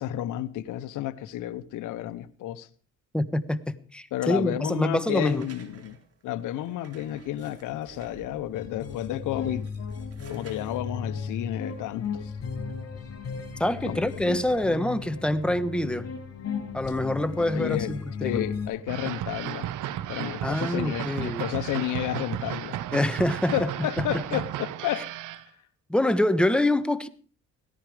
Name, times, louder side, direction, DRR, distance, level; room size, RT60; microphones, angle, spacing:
voice 1, 0.0-2.7 4.1-6.0 6.2-9.6 10.3-12.3 13.8-14.0 17.5-17.9 18.2-19.7 20.1-22.8 23.5-25.1, left 13 dB, 90° left, 1.0 m, -31 dB
voice 2, 3.1-5.5 13.6-16.1 16.7-18.4 20.4-21.4 22.9-23.7 24.0-24.1 25.9-27.1, left 1 dB, 5° left, 1.3 m, -26 dB
sound 1, 5.0-8.7 9.4-12.4, right 5 dB, 50° right, 3.5 m, -52 dB
sound 2, 8.5-18.7, left 6 dB, 50° left, 7.9 m, -35 dB
sound 3, 18.9-25.4, right 12 dB, 85° right, 1.1 m, -33 dB
18.0 x 14.0 x 5.1 m
cardioid pair, 90°, 30 cm